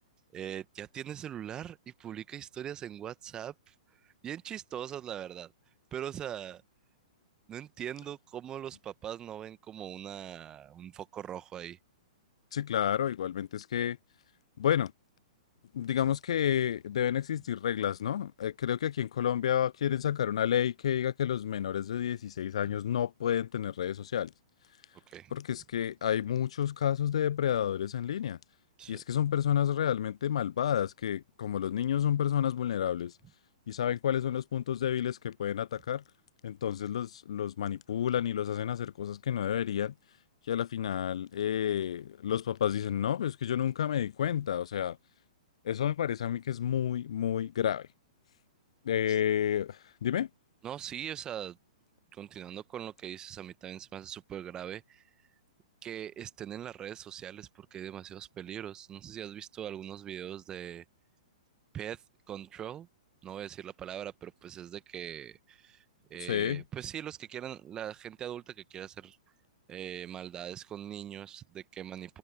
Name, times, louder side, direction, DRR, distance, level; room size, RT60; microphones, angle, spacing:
voice 1, 0.3-3.7 4.2-5.5 5.9-6.6 7.5-11.8 25.1-25.3 28.8-29.0 49.1-49.2 50.6-51.6 52.1-55.0 55.8-60.8 61.7-62.0 62.3-62.9 63.2-65.8 66.1-69.2 69.7-72.2, right 10 dB, 20° right, 1.4 m, -41 dB
voice 2, 12.5-14.0 14.6-14.9 15.7-24.3 25.3-28.4 28.9-33.1 33.7-36.0 36.4-39.9 40.5-45.0 45.6-47.9 48.8-50.3 66.2-66.6, left 10 dB, 60° left, 0.4 m, -30 dB
figure-of-eight pair, 110°, 4 cm